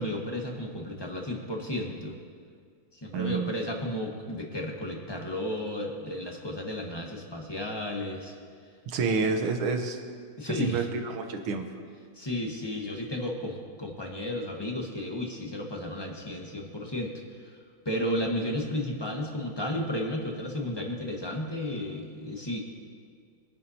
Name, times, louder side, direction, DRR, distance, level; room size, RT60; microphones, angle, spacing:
voice 1, 0.0-2.2 2.9-8.3 9.0-9.1 10.4-10.8 12.2-17.1 17.8-22.6, left 1 dB, 15° left, 0 dB, 1.0 m, -33 dB
voice 2, 3.1-3.5 8.9-10.0 10.5-11.7, right 4 dB, 90° right, 5 dB, 1.8 m, -28 dB
23.0 x 10.5 x 2.8 m, 2.1 s
omnidirectional pair, 2.2 m